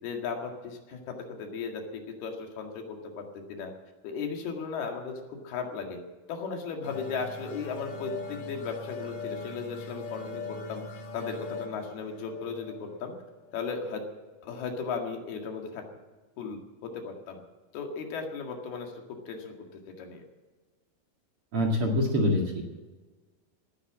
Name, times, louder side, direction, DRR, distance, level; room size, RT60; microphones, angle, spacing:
voice 1, 0.0-3.7 4.0-6.0 6.3-10.8 11.1-13.1 13.5-14.1 14.4-15.9 16.4-17.4 17.7-19.6 19.9-20.2, left 5 dB, 75° left, 3 dB, 3.9 m, -36 dB
sound 1, 6.8-14.1, left 4 dB, 60° left, 3.3 m, -41 dB
voice 2, 21.5-22.6, left 1 dB, 45° right, 1 dB, 2.4 m, -25 dB
18.0 x 10.0 x 7.4 m, 1.3 s
omnidirectional pair, 4.5 m